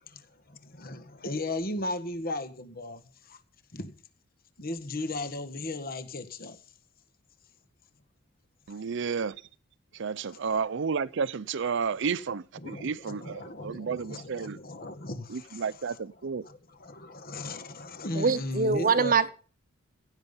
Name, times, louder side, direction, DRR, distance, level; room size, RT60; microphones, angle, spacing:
voice 1, 0.5-3.4 3.7-3.9 4.6-6.6 10.3-10.4 12.6-19.2, left 2 dB, 50° left, 1.8 m, -37 dB
voice 2, 8.7-9.3 10.0-14.6 15.3-16.4, right 5 dB, 65° right, 0.5 m, -31 dB
voice 3, 18.1-19.3, right 5 dB, 45° right, 0.9 m, -24 dB
16.5 x 9.0 x 5.6 m
head